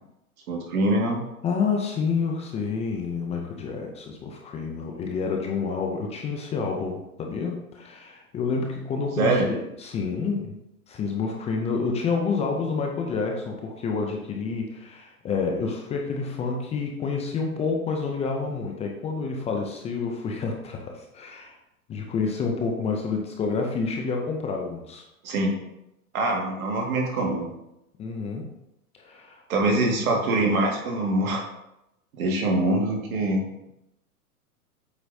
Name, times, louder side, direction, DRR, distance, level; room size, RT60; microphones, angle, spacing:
voice 1, 0.5-1.2 9.2-9.5 25.2-25.5 26.1-27.5 29.5-31.4 32.2-33.4, right 2 dB, 65° right, 0 dB, 2.0 m, -24 dB
voice 2, 1.4-10.6 10.9-21.6 21.9-25.0 28.0-28.5 29.0-29.4 29.7-29.9, left 4 dB, 15° left, 1 dB, 0.5 m, -29 dB
8.1 x 4.9 x 2.7 m, 0.85 s
hypercardioid pair, 120°, 45 cm